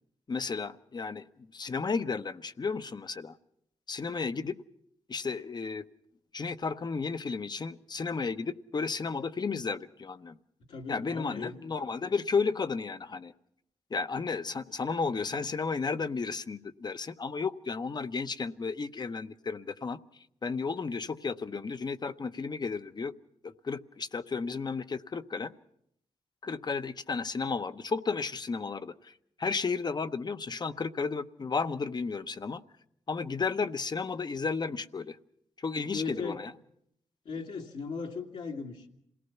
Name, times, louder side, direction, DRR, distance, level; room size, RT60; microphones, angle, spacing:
voice 1, 0.3-1.2 1.5-3.3 3.9-4.6 5.1-5.8 6.3-10.4 10.9-13.3 13.9-20.0 20.4-23.1 23.4-25.5 26.4-29.1 29.4-32.6 33.1-35.2 35.6-36.5, left 4 dB, 40° left, 12 dB, 0.8 m, -33 dB
voice 2, 10.7-11.6 35.9-36.4 37.3-38.9, left 4 dB, 80° left, -2 dB, 2.1 m, -37 dB
27.0 x 18.0 x 5.8 m, 0.74 s
cardioid pair, 70°, 11 cm